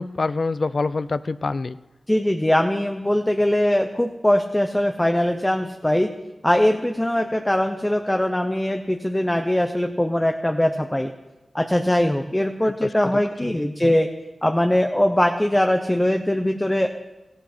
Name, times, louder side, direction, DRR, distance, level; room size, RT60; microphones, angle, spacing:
voice 1, 0.0-1.8 12.6-12.9 13.4-13.6 13.8-14.0, left 3 dB, 55° left, 16 dB, 0.3 m, -26 dB
voice 2, 2.1-6.1 6.4-11.1 11.5-14.1 14.4-16.9, left 1 dB, 15° left, 5 dB, 0.7 m, -21 dB
15.0 x 11.5 x 4.3 m, 1.1 s
wide cardioid pair, 65°, 0 cm